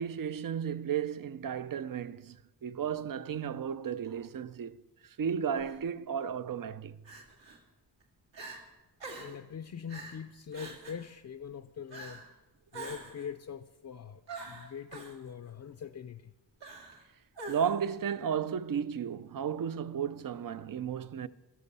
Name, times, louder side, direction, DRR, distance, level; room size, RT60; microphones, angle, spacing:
voice 1, 0.0-7.0 17.5-21.3, right 8 dB, 50° right, 0.5 m, -34 dB
Crying sobbing, 5.5-5.8 7.1-7.6 8.0-8.1 8.3-8.6 9.0-9.4 9.9-10.2 10.5-11.1 11.9-12.3 12.7-13.3 14.3-15.2 16.6-17.0 17.4-17.9, right 3 dB, 75° right, 2.3 m, -45 dB
voice 2, 9.2-12.2 12.7-16.3, left 7 dB, 40° left, 0.5 m, -43 dB
12.5 x 12.5 x 5.5 m
cardioid pair, 70°, 44 cm